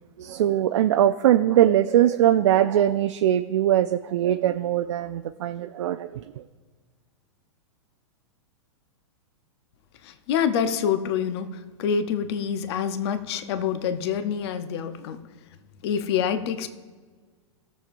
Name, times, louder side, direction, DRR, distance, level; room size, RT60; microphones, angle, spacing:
voice 1, 0.2-6.4, right 11 dB, 70° right, 0.4 m, -21 dB
voice 2, 10.0-15.2 15.8-16.7, left 7 dB, 55° left, 0.7 m, -26 dB
18.5 x 7.0 x 2.6 m
hypercardioid pair, 120°, 16 cm